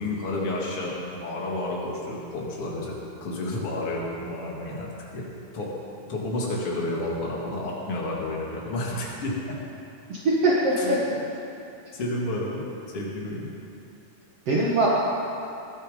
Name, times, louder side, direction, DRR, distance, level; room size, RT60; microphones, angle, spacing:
voice 1, 0.0-2.9 3.2-5.3 5.5-5.7 6.1-9.6 10.8-11.0 11.9-12.7 12.9-13.5, left 1 dB, 45° left, -3 dB, 3.3 m, -30 dB
voice 2, 10.1-11.0 14.5-14.9, right 2 dB, 50° right, -6 dB, 2.6 m, -22 dB
22.0 x 11.5 x 5.4 m, 2.7 s
omnidirectional pair, 3.8 m